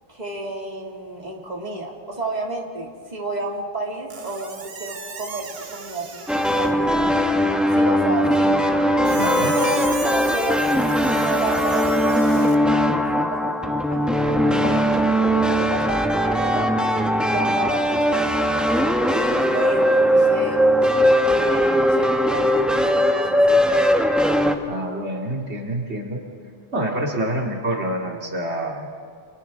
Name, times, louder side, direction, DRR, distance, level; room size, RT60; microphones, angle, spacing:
voice 1, 0.1-7.1 7.7-8.6 9.5-10.6 11.1-16.7 17.2-20.9 21.4-23.6, right 1 dB, 40° right, -1 dB, 2.8 m, -31 dB
Squeak, 4.1-6.9 9.0-12.6, right 4 dB, 65° right, 1.4 m, -36 dB
sound 1, 6.3-24.5, equal, ahead, 1.2 m, -19 dB
voice 2, 9.1-9.6 24.7-26.2 26.7-28.9, right 1 dB, 80° right, 0 dB, 2.6 m, -26 dB
30.0 x 28.0 x 3.8 m, 2.2 s
omnidirectional pair, 1.1 m